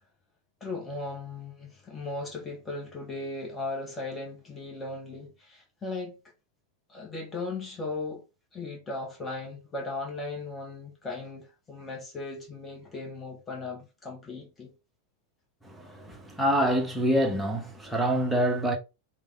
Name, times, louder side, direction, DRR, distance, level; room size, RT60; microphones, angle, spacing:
voice 1, 0.6-6.2 6.9-8.2 8.5-14.7, left 3 dB, 20° left, 1.4 m, -37 dB
voice 2, 15.6-18.8, equal, 5° right, 1.3 m, -26 dB
3.5 x 3.5 x 3.4 m
figure-of-eight pair, 90°, 0 cm